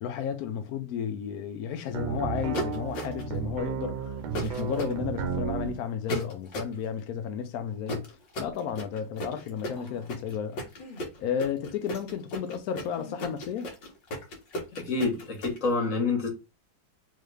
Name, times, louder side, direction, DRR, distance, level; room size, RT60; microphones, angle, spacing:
voice 1, 0.0-4.2 4.4-8.1 8.4-10.6 11.2-13.7, left 8 dB, 85° left, 0.8 m, -33 dB
sound 1, 1.9-5.8, right 7 dB, 90° right, 1.5 m, -33 dB
sound 2, 2.5-3.4 4.3-4.9 6.1-6.8 7.9-15.6, equal, 65° left, 1.8 m, -35 dB
sound 3, 9.6-10.3 10.8-11.1 11.9-12.1 12.9-13.3 14.1-14.2, left 2 dB, 25° left, 1.3 m, -48 dB
voice 2, 14.7-16.3, left 3 dB, 45° left, 1.5 m, -27 dB
3.7 x 3.1 x 3.3 m
omnidirectional pair, 2.2 m